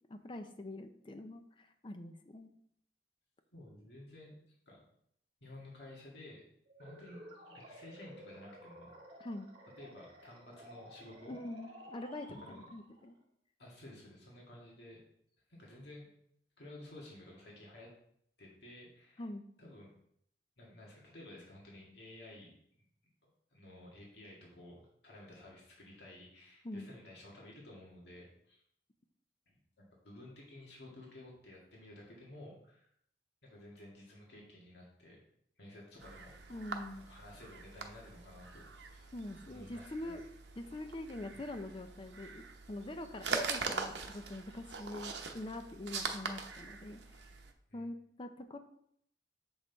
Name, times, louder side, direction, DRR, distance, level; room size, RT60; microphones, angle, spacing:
voice 1, 0.1-2.5 9.2-9.5 11.3-13.2 19.2-19.4 26.6-26.9 36.5-37.1 39.1-40.2 40.6-47.2 47.7-48.6, left 1 dB, 30° left, 7 dB, 0.6 m, -44 dB
voice 2, 3.5-4.4 4.7-4.8 5.4-6.4 6.8-8.9 9.8-11.3 12.4-12.7 13.6-15.0 15.5-16.1 16.6-17.9 18.4-19.2 19.6-19.9 20.6-22.5 22.8-22.9 23.2-28.6 29.5-32.9 33.4-35.2 35.6-36.6 37.1-38.6 38.9-39.1 39.5-40.1 47.7-47.9, left 1 dB, 75° left, -3 dB, 2.0 m, -53 dB
sound 1, 6.6-13.1, equal, 30° right, 1.8 m, -54 dB
sound 2, 36.0-47.5, right 4 dB, 80° right, 0.8 m, -43 dB
7.0 x 5.4 x 4.0 m, 0.70 s
head